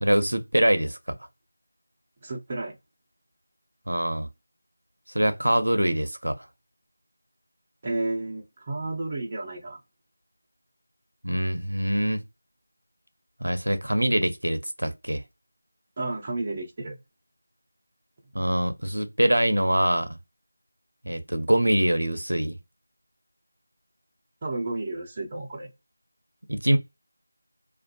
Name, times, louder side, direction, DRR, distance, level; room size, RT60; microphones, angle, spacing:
voice 1, 0.0-1.0 3.9-4.3 5.1-6.5 11.2-12.2 13.4-15.2 18.3-20.2 21.0-22.6 26.5-26.8, right 1 dB, 85° right, 0.6 m, -24 dB
voice 2, 2.2-2.8 7.8-9.8 16.0-17.0 24.4-25.7, right 2 dB, 25° right, 0.6 m, -32 dB
2.6 x 2.3 x 2.2 m
figure-of-eight pair, 170°, 0 cm